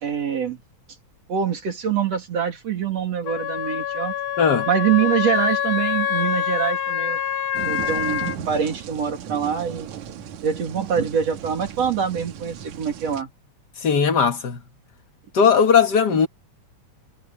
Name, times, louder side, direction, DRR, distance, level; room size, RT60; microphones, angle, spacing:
voice 1, 0.0-0.6 1.3-4.1 4.7-7.2 7.6-9.9 10.4-13.3, right 8 dB, 60° right, 3.7 m, -24 dB
Wind instrument woodwind instrument, 3.3-8.4, left 9 dB, 90° left, 2.5 m, -25 dB
voice 2, 4.4-4.7 13.8-14.6 15.3-16.3, left 6 dB, 50° left, 1.4 m, -18 dB
sound 1, 7.5-13.2, right 9 dB, 75° right, 2.6 m, -35 dB
omnidirectional pair, 3.4 m